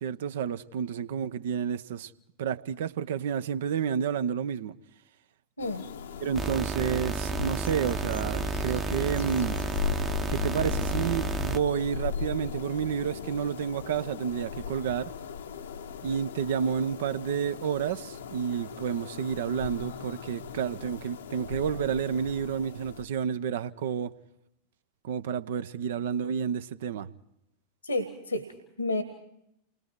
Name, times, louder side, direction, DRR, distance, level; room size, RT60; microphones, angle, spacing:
voice 1, 0.0-2.1 2.4-4.7 6.2-9.6 10.3-15.1 16.0-24.1 25.0-27.1, right 8 dB, 55° right, 0.8 m, -30 dB
sound 1, 5.6-23.0, left 6 dB, 65° left, 1.0 m, -37 dB
sound 2, 6.3-11.6, right 4 dB, 20° right, 0.9 m, -32 dB
voice 2, 27.8-29.0, left 2 dB, 80° left, 1.7 m, -31 dB
29.0 x 21.0 x 4.7 m
figure-of-eight pair, 90°, 0 cm